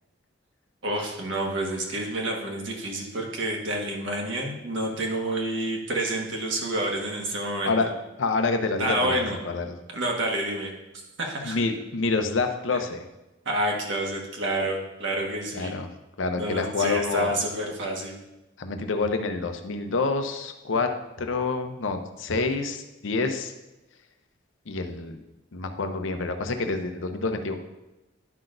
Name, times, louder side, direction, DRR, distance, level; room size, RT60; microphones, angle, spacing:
voice 1, 0.8-7.8 8.8-9.4 9.9-10.7 11.2-11.6 13.4-15.7 16.3-18.1, right 1 dB, 75° right, 0 dB, 1.4 m, -28 dB
voice 2, 7.6-9.2 9.4-9.7 11.4-13.0 15.5-15.9 16.2-17.3 18.6-20.9 21.2-23.5 24.7-25.2 25.5-27.6, left 3 dB, 85° left, 6 dB, 0.7 m, -27 dB
10.5 x 5.9 x 2.6 m, 1.0 s
head